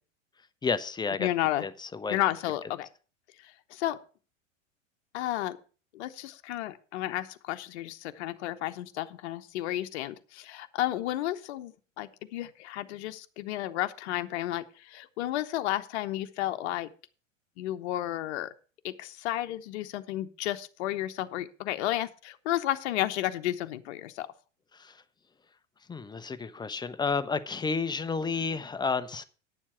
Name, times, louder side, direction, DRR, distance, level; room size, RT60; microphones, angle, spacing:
voice 1, 0.6-1.3 1.6-2.2 24.7-25.0 25.9-29.2, left 4 dB, 10° left, 12 dB, 0.7 m, -31 dB
voice 2, 1.2-1.7 2.1-2.9 3.4-4.0 5.1-5.6 5.9-16.9 17.6-18.5 18.8-24.3, left 14 dB, 60° left, 9 dB, 0.9 m, -32 dB
10.0 x 7.3 x 5.7 m, 0.37 s
hypercardioid pair, 90°, 38 cm